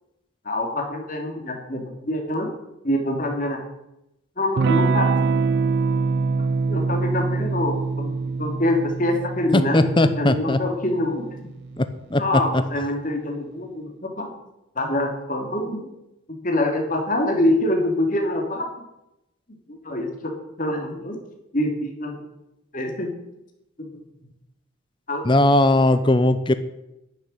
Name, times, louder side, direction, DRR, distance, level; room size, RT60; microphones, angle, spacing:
voice 1, 0.4-2.5 2.8-3.6 4.4-5.1 6.7-11.4 12.1-14.3 14.7-15.9 16.3-18.7 19.7-21.2 21.5-22.2 22.7-23.1 23.8-23.9 25.1-25.3, left 1 dB, 40° left, 2 dB, 2.6 m, -25 dB
Electric guitar / Strum, 4.6-12.9, right 4 dB, 50° right, 0.3 m, -25 dB
voice 2, 9.5-10.6 11.8-11.9 12.1-12.2 12.5-12.6 25.2-26.5, left 1 dB, 25° left, 11 dB, 0.7 m, -18 dB
12.0 x 7.0 x 9.9 m, 0.90 s
head